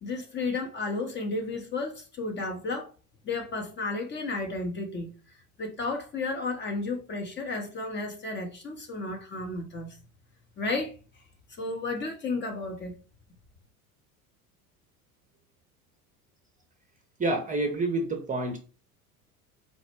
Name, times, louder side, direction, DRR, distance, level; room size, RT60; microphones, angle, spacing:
voice 1, 0.0-2.9 3.2-5.1 5.6-10.0 10.6-11.0 11.6-12.9, left 3 dB, 25° left, 0.7 m, -32 dB
voice 2, 17.2-18.6, right 2 dB, 15° right, 0.7 m, -28 dB
4.2 x 2.1 x 2.9 m
hypercardioid pair, 75°, 45 cm